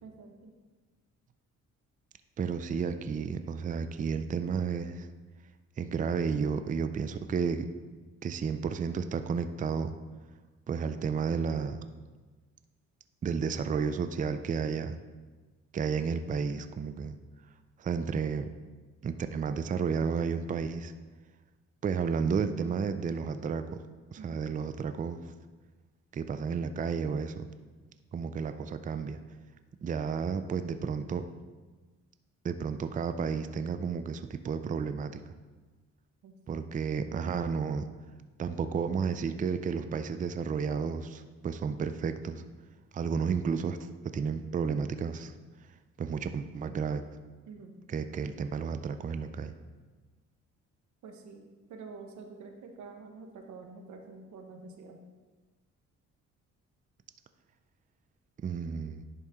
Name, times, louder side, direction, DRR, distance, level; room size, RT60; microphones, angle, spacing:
voice 1, 0.0-0.5 24.2-24.4 36.2-36.6 47.5-47.8 51.0-55.0, right 4 dB, 70° right, 4 dB, 1.1 m, -48 dB
voice 2, 2.4-5.1 5.8-7.7 8.2-9.9 10.7-11.8 13.2-15.0 15.7-17.2 17.8-18.5 19.0-20.9 21.8-23.8 24.1-25.2 26.1-27.5 28.1-29.2 29.8-31.3 32.4-35.2 36.5-37.9 38.4-42.4 42.9-43.8 44.0-45.3 46.0-47.0 47.9-49.5 58.4-59.0, right 6 dB, 25° right, 10 dB, 0.4 m, -32 dB
10.5 x 4.2 x 3.6 m, 1.3 s
cardioid pair, 90°, 30 cm